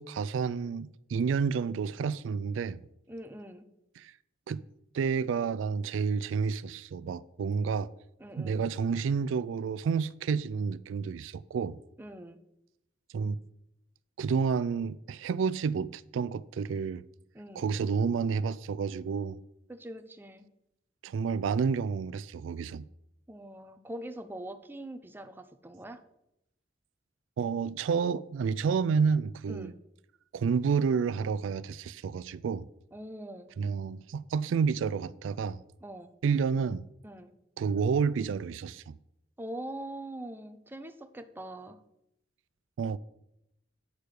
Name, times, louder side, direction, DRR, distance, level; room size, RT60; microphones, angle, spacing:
voice 1, 0.0-2.8 4.0-4.1 4.5-4.6 4.9-7.9 8.4-11.8 13.1-13.4 14.2-17.0 17.6-19.4 21.0-22.8 27.4-29.7 30.3-32.7 33.6-35.6 36.2-36.8 37.6-39.0 42.8-43.0, right 5 dB, 80° right, 0.3 m, -30 dB
voice 2, 3.1-3.7 8.2-8.6 12.0-12.4 17.3-17.7 19.7-20.5 23.3-26.0 29.5-29.8 32.9-33.5 35.8-36.1 37.0-37.3 39.4-41.8, right 1 dB, 10° right, 0.6 m, -43 dB
9.4 x 6.6 x 4.9 m
head